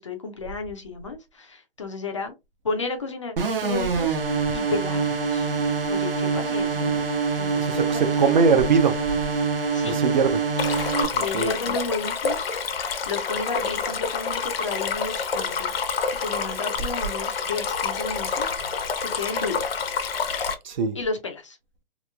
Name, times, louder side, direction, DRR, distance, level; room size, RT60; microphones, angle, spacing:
voice 1, 0.0-2.3 2.6-4.2 4.5-5.5 5.9-7.0 7.4-8.5 9.7-10.0 11.1-12.6 13.1-19.8 20.9-21.6, left 4 dB, 35° left, 0.4 m, -33 dB
sound 1, 3.4-11.0, right 4 dB, 65° right, 1.0 m, -25 dB
voice 2, 7.6-9.0 9.8-10.4 11.1-11.7 20.6-21.0, right 5 dB, 50° right, 0.5 m, -22 dB
Stream, 10.6-20.5, left 5 dB, 75° left, 0.7 m, -28 dB
3.0 x 2.5 x 2.2 m
hypercardioid pair, 165°, 30 cm